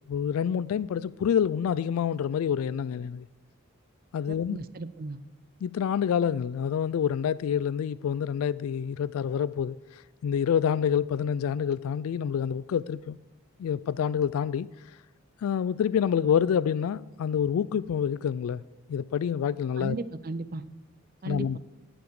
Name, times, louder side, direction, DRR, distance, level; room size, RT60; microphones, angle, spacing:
voice 1, 0.1-3.3 4.1-4.6 5.6-13.2 13.6-14.7 15.4-18.6 18.9-20.0 21.3-21.6, left 8 dB, 80° left, 0.3 m, -27 dB
voice 2, 4.3-5.2 19.8-20.6 21.2-21.6, right 3 dB, 40° right, 0.5 m, -36 dB
18.0 x 7.1 x 4.8 m
head